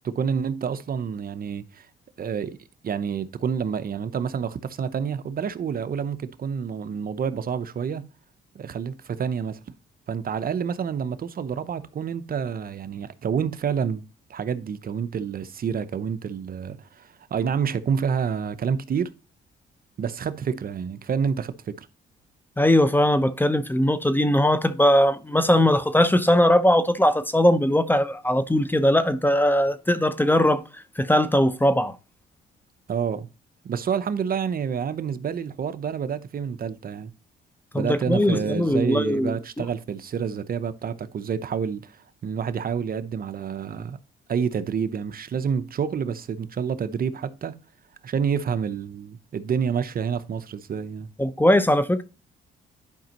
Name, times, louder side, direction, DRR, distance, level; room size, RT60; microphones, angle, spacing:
voice 1, 0.0-1.9 2.2-2.6 2.8-8.0 8.5-9.6 10.1-14.0 14.3-19.1 20.0-21.9 32.9-33.3 33.6-37.1 37.7-44.0 44.3-47.5 48.0-51.1, right 7 dB, 45° right, 0.7 m, -28 dB
voice 2, 22.6-30.6 31.0-32.0 37.7-39.6 51.2-52.0, left 1 dB, 10° left, 0.7 m, -20 dB
10.5 x 5.1 x 2.9 m
cardioid pair, 90°, 20 cm